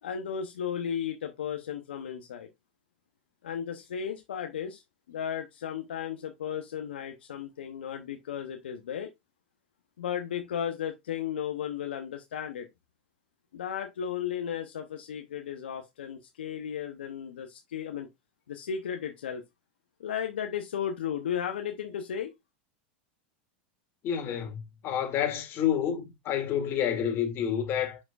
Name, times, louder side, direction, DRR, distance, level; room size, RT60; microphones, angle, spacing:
voice 1, 0.0-2.5 3.4-4.8 5.1-9.1 10.0-12.7 13.5-18.1 18.5-19.4 20.0-22.3, left 8 dB, 85° left, 0.9 m, -35 dB
voice 2, 24.0-28.0, left 9 dB, 45° left, 2.5 m, -29 dB
7.6 x 6.1 x 2.4 m
hypercardioid pair, 105°, 6 cm